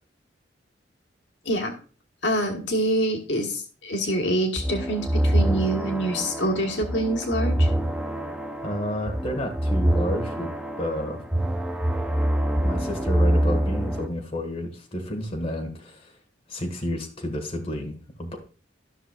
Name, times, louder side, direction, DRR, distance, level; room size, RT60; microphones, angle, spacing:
voice 1, 2.2-7.7, right 1 dB, 85° left, 2 dB, 1.4 m, -26 dB
sound 1, 4.6-14.1, right 1 dB, 5° right, 0.6 m, -25 dB
voice 2, 8.6-10.5 10.8-11.2 12.6-16.1 16.5-18.4, equal, 35° left, 2 dB, 1.6 m, -30 dB
13.5 x 6.1 x 2.4 m, 0.37 s
head